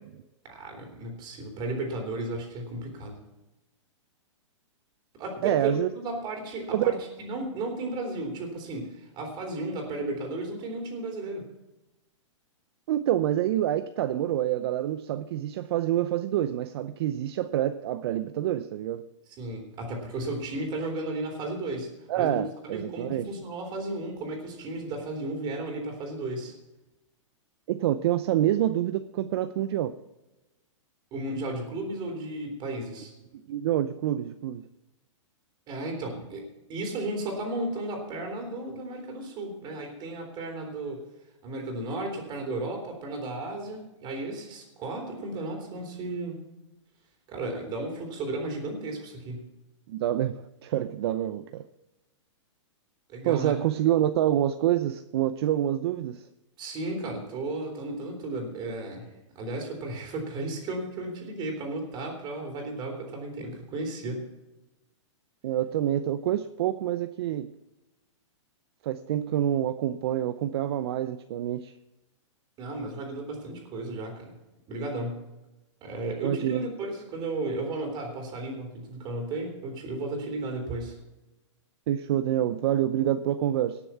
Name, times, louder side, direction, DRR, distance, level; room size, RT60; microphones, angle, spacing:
voice 1, 0.4-3.2 5.2-11.4 19.4-21.9 22.2-26.5 31.1-33.1 35.7-36.4 36.7-41.0 41.4-46.4 47.3-49.4 53.1-53.5 56.6-59.1 59.4-64.2 72.6-74.4 74.7-75.2 75.8-81.0, right 2 dB, 25° right, 2 dB, 3.8 m, -34 dB
voice 2, 5.4-5.9 6.7-7.0 12.9-19.0 22.1-23.3 27.7-29.9 33.5-34.6 49.9-51.7 53.2-56.3 65.4-67.5 68.8-71.7 76.2-76.7 81.9-83.8, right 12 dB, 55° right, 11 dB, 0.6 m, -27 dB
18.0 x 6.9 x 5.8 m, 1.0 s
hypercardioid pair, 145°, 16 cm